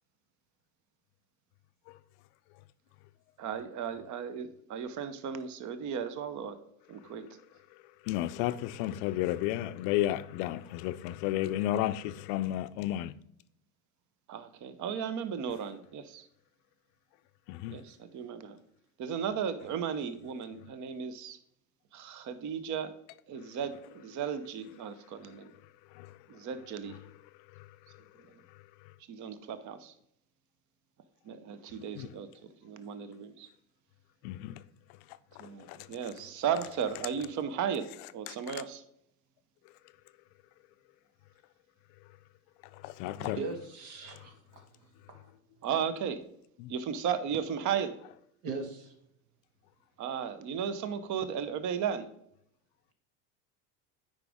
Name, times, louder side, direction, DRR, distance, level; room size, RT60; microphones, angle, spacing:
voice 1, 3.4-6.6 6.9-7.3 14.3-16.3 17.7-18.6 19.0-21.4 21.9-22.9 23.3-25.5 26.3-27.0 29.1-29.9 31.2-33.5 35.4-38.8 43.1-43.4 45.6-46.2 46.7-48.0 50.0-52.1, right 7 dB, 45° right, 0.8 m, -35 dB
voice 2, 8.1-13.1 17.5-17.8 25.9-26.2 32.0-32.1 34.2-34.6 35.4-35.8 38.3-38.4 42.8-43.4 46.6-46.7, left 14 dB, 65° left, 0.5 m, -32 dB
voice 3, 43.4-44.6 45.2-45.3 48.4-48.9, right 3 dB, 70° right, 1.8 m, -39 dB
8.9 x 5.1 x 3.5 m
supercardioid pair, 110°, 43 cm